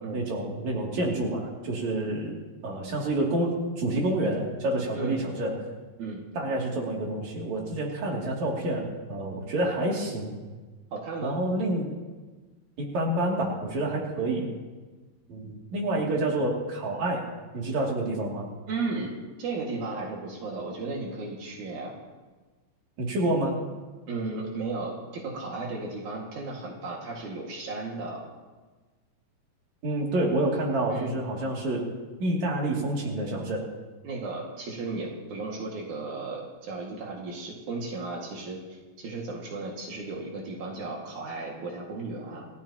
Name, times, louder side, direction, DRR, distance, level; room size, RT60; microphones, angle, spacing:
voice 1, 0.1-2.4 2.6-5.6 6.3-10.3 11.2-11.9 12.8-14.4 15.3-17.2 17.5-18.5 23.0-23.6 29.8-31.8 32.2-33.6, right 1 dB, 70° right, -2 dB, 4.0 m, -28 dB
voice 2, 10.9-11.4 14.2-14.5 18.7-19.1 19.4-22.0 24.1-28.2 30.9-31.1 34.0-42.5, right 3 dB, 85° right, -2 dB, 3.5 m, -35 dB
28.5 x 14.5 x 2.9 m, 1.3 s
omnidirectional pair, 3.3 m